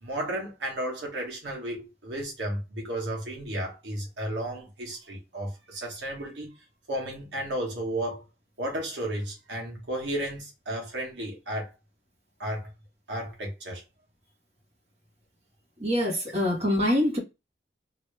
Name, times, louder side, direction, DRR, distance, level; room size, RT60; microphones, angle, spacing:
voice 1, 0.0-6.6 6.9-8.2 8.6-11.7 12.4-12.7 13.1-13.8, right 1 dB, 75° right, 1.3 m, -33 dB
voice 2, 15.8-17.2, left 1 dB, 35° right, 1.4 m, -24 dB
3.0 x 2.7 x 3.2 m
head